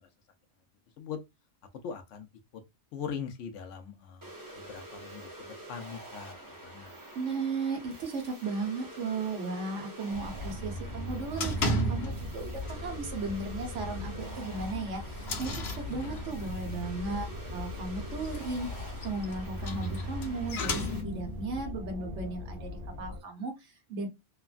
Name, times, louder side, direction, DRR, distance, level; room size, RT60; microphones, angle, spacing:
voice 1, 1.8-2.3 2.5-2.6 2.9-7.0 15.9-16.9, left 7 dB, 90° left, 0.9 m, -42 dB
sound 1, 4.2-21.0, right 1 dB, 25° right, 0.5 m, -47 dB
voice 2, 7.1-17.3 17.5-24.1, right 3 dB, 75° right, 1.2 m, -36 dB
sound 2, 10.1-23.2, left 1 dB, 55° right, 0.7 m, -39 dB
sound 3, 11.4-12.4 12.7-13.0 13.4-13.5 13.9-14.0 14.6-16.6 18.0-21.4, equal, 65° left, 0.9 m, -34 dB
3.1 x 2.2 x 2.4 m
omnidirectional pair, 1.2 m